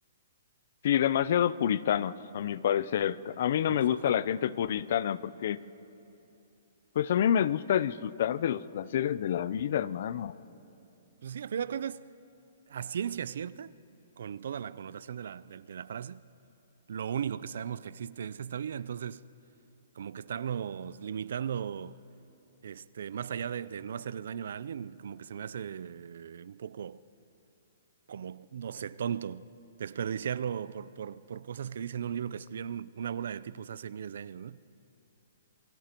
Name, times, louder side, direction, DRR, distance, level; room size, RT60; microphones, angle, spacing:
voice 1, 0.8-5.6 7.0-10.3, left 9 dB, 50° left, 0.5 m, -28 dB
voice 2, 3.7-4.2 11.2-12.1 12.7-13.7 14.2-16.2 16.9-19.2 20.0-22.0 22.6-27.0 28.1-29.5 29.8-34.6, right 8 dB, 65° right, 0.5 m, -37 dB
28.0 x 22.0 x 4.5 m
hypercardioid pair, 170°, 0 cm